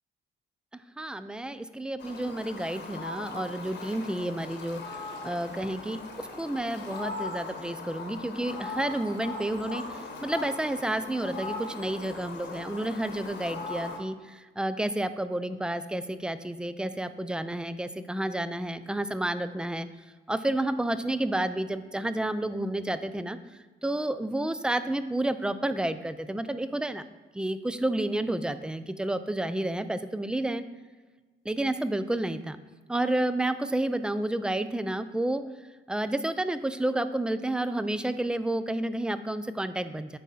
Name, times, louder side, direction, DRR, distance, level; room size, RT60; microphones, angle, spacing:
voice 1, 0.7-6.0 6.4-19.9 20.3-27.0 27.3-30.6 31.5-32.6 32.9-35.5 35.9-40.2, right 1 dB, 5° right, 12 dB, 0.4 m, -30 dB
Fowl, 2.0-14.0, left 3 dB, 60° left, 1.2 m, -39 dB
9.3 x 3.6 x 4.2 m, 1.3 s
cardioid pair, 90°, 20 cm